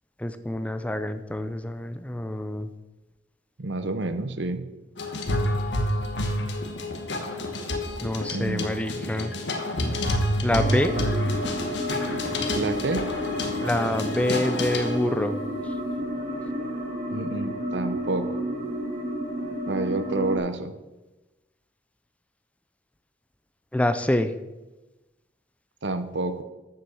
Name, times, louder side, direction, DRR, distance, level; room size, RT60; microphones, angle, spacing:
voice 1, 0.2-2.7 8.0-9.3 10.4-10.9 13.6-15.4 23.7-24.3, left 1 dB, 5° left, 10 dB, 0.5 m, -26 dB
voice 2, 3.6-4.7 8.3-8.8 10.7-10.8 12.5-13.0 17.1-18.4 19.7-20.7 25.8-26.4, right 2 dB, 70° right, 10 dB, 0.9 m, -29 dB
sound 1, 5.0-15.2, left 1 dB, 70° left, 1.2 m, -28 dB
sound 2, 10.5-20.4, equal, 40° right, 3.2 m, -31 dB
7.7 x 7.1 x 7.1 m, 1.1 s
head